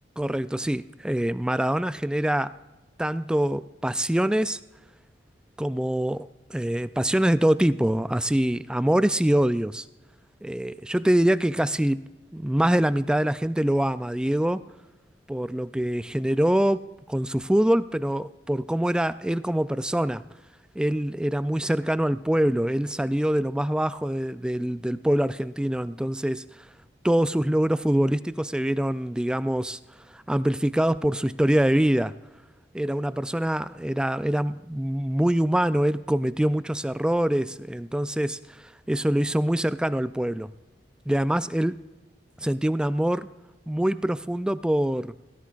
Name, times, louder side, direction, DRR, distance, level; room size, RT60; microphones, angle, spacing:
voice 1, 0.2-2.5 3.0-4.6 5.6-9.8 10.4-12.0 12.3-14.6 15.3-16.8 17.1-20.2 20.8-26.4 27.0-29.8 30.1-32.1 32.7-40.5 41.1-41.7 42.4-43.3 43.7-45.1, right 1 dB, 5° right, 14 dB, 0.3 m, -24 dB
17.5 x 14.0 x 2.5 m, 1.1 s
head